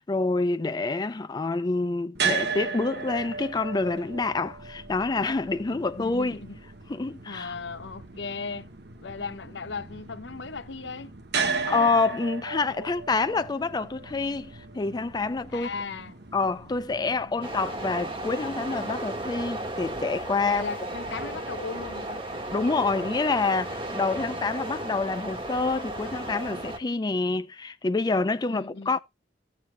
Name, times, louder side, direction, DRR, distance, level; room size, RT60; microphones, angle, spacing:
voice 1, 0.0-6.4 6.9-7.5 11.7-15.7 16.3-20.6 22.5-29.0, left 3 dB, 25° left, 0.4 m, -27 dB
sound 1, 2.1-18.3, right 5 dB, 65° right, 1.4 m, -36 dB
voice 2, 5.7-6.6 7.3-8.7 9.0-11.1 11.4-11.9 15.5-16.2 17.0-17.6 20.5-22.2 28.5-29.0, left 4 dB, 75° left, 0.8 m, -37 dB
sound 2, 17.4-26.8, right 1 dB, 30° right, 1.7 m, -34 dB
15.0 x 7.3 x 2.2 m
head